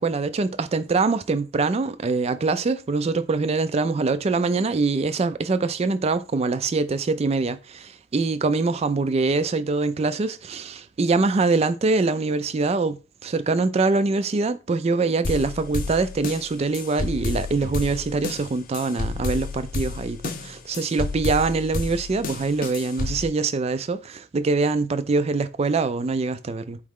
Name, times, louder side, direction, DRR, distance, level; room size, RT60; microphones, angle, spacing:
voice 1, 0.0-26.8, right 3 dB, 30° right, 0.3 m, -24 dB
sound 1, 15.2-23.3, left 3 dB, 40° left, 0.5 m, -31 dB
4.7 x 3.1 x 3.6 m
head